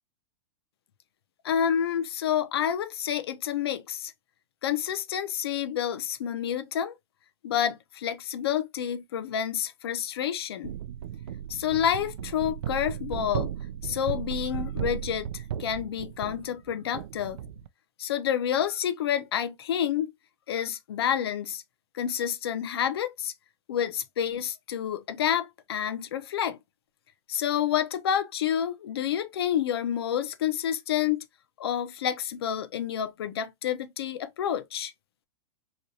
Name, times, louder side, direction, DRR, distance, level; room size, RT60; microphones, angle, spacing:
voice 1, 1.4-4.1 4.6-6.9 7.4-10.8 11.5-13.5 13.8-17.4 18.0-20.1 20.5-21.6 21.9-23.3 23.7-26.6 27.3-31.2 31.6-34.9, left 9 dB, 70° left, 0.8 m, -29 dB
sound 1, 10.6-17.7, right 9 dB, 85° right, 0.4 m, -35 dB
3.1 x 3.0 x 2.7 m
supercardioid pair, 175°, 13 cm